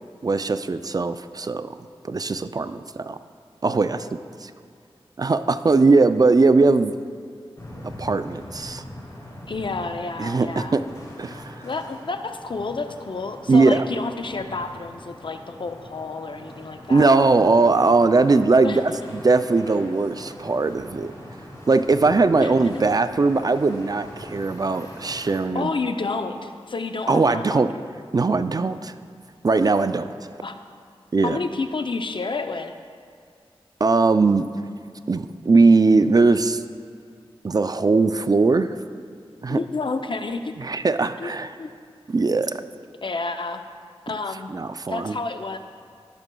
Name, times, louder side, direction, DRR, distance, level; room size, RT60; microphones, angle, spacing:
voice 1, 0.2-1.7 2.0-3.2 3.6-4.5 5.2-6.9 8.0-8.8 10.2-10.8 11.2-11.7 13.5-13.8 16.9-21.1 21.7-25.7 27.1-27.7 28.1-28.9 29.4-30.1 31.1-31.4 33.8-34.4 35.1-36.6 37.4-38.7 39.4-39.6 40.6-41.5 42.1-42.6 44.5-45.2, right 3 dB, 40° right, 11 dB, 0.3 m, -20 dB
sound 1, 7.6-25.4, left 1 dB, 35° left, 2.1 m, -42 dB
voice 2, 9.5-10.8 11.6-17.2 18.6-18.8 22.4-22.8 25.5-27.6 30.4-30.6 31.2-32.7 39.5-40.5 41.2-41.3 41.6-41.7 43.0-43.6 44.1-44.5 44.9-45.6, left 3 dB, 55° left, 7 dB, 0.5 m, -30 dB
15.5 x 6.0 x 2.3 m, 2.2 s
cardioid pair, 45°, 10 cm